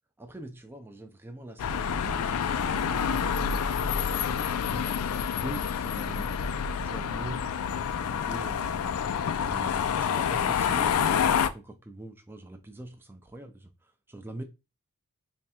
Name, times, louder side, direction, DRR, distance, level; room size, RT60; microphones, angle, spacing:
voice 1, 0.2-3.7 4.0-7.5 8.0-9.0 9.5-14.4, right 1 dB, 10° right, 0.4 m, -43 dB
sound 1, 1.6-11.5, left 7 dB, 75° left, 0.4 m, -28 dB
3.3 x 2.3 x 4.2 m
head